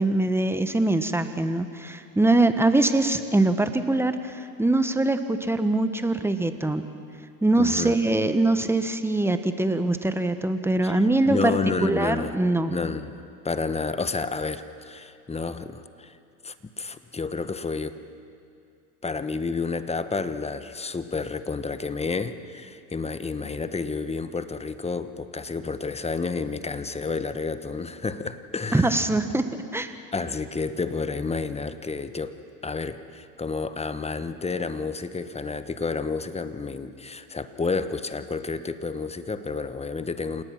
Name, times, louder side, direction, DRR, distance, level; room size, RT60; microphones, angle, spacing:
voice 1, 0.0-6.8 7.4-11.5 11.8-12.7 28.7-29.9, right 2 dB, 5° right, 9 dB, 1.3 m, -23 dB
voice 2, 7.6-7.9 10.8-12.3 12.7-16.2 16.4-18.0 19.0-29.1 30.1-32.4 32.6-40.4, left 4 dB, 15° left, 12 dB, 1.1 m, -30 dB
28.0 x 18.5 x 6.0 m, 2.6 s
hypercardioid pair, 85°, 46 cm